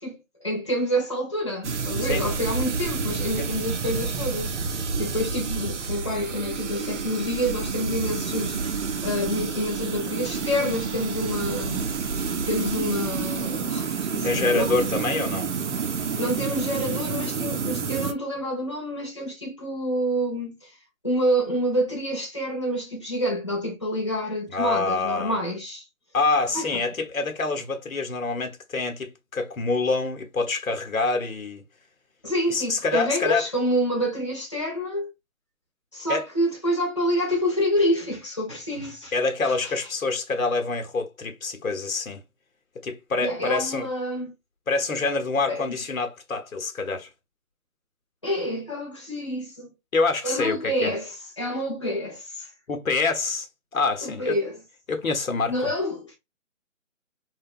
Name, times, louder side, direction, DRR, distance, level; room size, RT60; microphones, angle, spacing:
voice 1, 0.0-4.5 4.7-8.7 9.0-11.9 12.4-14.6 16.2-20.7 21.0-25.8 26.5-26.8 32.2-35.1 35.9-39.1 43.2-44.3 45.5-45.6 48.2-49.7 50.2-52.5 54.0-54.6 55.5-56.2, equal, 20° left, 0.7 m, -27 dB
sound 1, 1.6-18.1, right 5 dB, 60° right, 0.5 m, -29 dB
voice 2, 14.2-15.5 24.5-25.4 26.1-31.6 32.5-33.5 36.1-36.3 39.1-42.2 42.8-43.9 44.7-47.1 49.9-50.9 52.7-53.5 53.7-54.4 54.9-55.7, left 3 dB, 85° left, 0.8 m, -26 dB
2.8 x 2.2 x 2.5 m
figure-of-eight pair, 170°, 41 cm